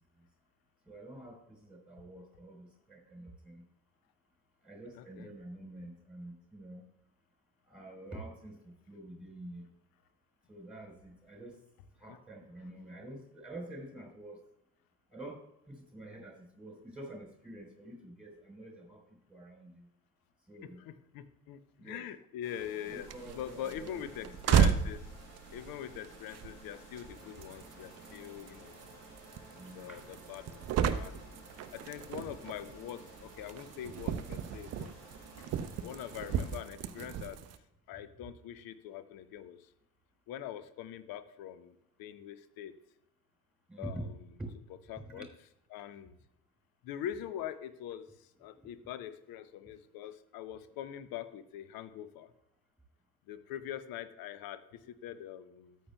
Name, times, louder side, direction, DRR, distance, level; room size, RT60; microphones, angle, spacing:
voice 1, 0.9-3.6 4.6-6.8 7.6-9.7 10.5-11.6 12.0-14.4 15.1-15.4 15.7-19.9 20.5-20.9 21.8-22.0 22.9-24.3 29.5-30.0 43.7-44.1 44.4-44.5 45.0-45.3, right 1 dB, ahead, 1 dB, 4.3 m, -47 dB
voice 2, 4.9-5.3 12.1-12.2 20.6-25.1 25.5-28.8 29.7-31.3 31.7-34.9 35.4-35.5 35.8-37.4 37.9-39.7 40.3-42.8 43.8-44.1 44.9-45.3 45.7-46.2 46.8-52.3 53.3-55.8, left 10 dB, 45° left, 13 dB, 0.8 m, -43 dB
sound 1, 22.4-36.6, left 1 dB, 75° left, 2.9 m, -55 dB
sound 2, 22.9-37.6, right 8 dB, 35° right, 0.5 m, -35 dB
13.5 x 9.2 x 2.3 m, 0.81 s
figure-of-eight pair, 50°, 48 cm